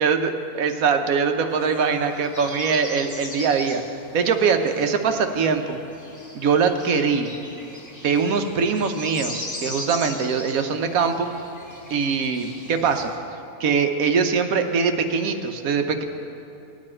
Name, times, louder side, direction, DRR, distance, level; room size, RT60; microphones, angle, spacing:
voice 1, 0.0-3.8 4.1-5.8 6.3-7.3 8.0-11.3 11.9-13.1 13.6-16.0, right 5 dB, 70° right, 6 dB, 1.2 m, -22 dB
sound 1, 1.5-13.2, left 1 dB, 15° left, 1.2 m, -39 dB
18.5 x 8.9 x 4.4 m, 2.7 s
omnidirectional pair, 1.6 m